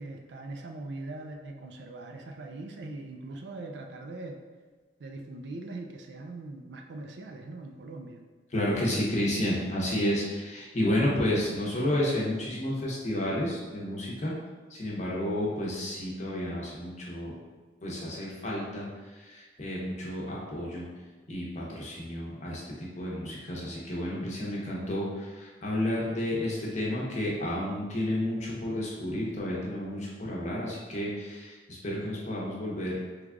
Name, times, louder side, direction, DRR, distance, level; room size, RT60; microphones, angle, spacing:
voice 1, 0.0-4.4 5.0-8.2, right 2 dB, 75° right, 4 dB, 0.4 m, -41 dB
voice 2, 8.5-14.3 14.7-17.3 17.8-18.9 19.2-20.9 21.3-33.0, left 1 dB, 40° left, -4 dB, 0.8 m, -31 dB
3.2 x 2.3 x 3.6 m, 1.3 s
head